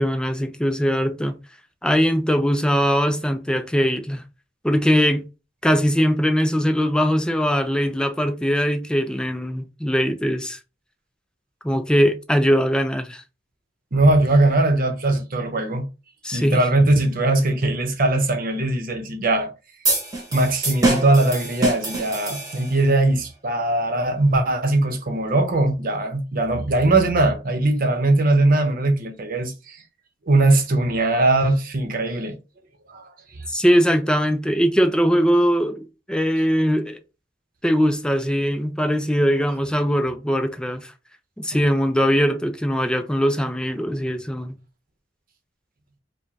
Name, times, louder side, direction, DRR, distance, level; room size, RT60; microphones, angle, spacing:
voice 1, 0.0-1.4 1.8-4.2 4.6-5.2 5.6-10.6 11.6-13.2 16.2-16.6 33.5-37.0 37.6-40.9 41.4-44.6, equal, 5° left, 0.4 m, -21 dB
voice 2, 13.9-15.9 16.3-19.5 20.3-29.8 30.3-32.4 32.9-33.4, right 2 dB, 50° right, 0.8 m, -20 dB
sound 1, 19.8-22.9, right 2 dB, 20° right, 1.3 m, -25 dB
4.8 x 2.2 x 2.8 m
head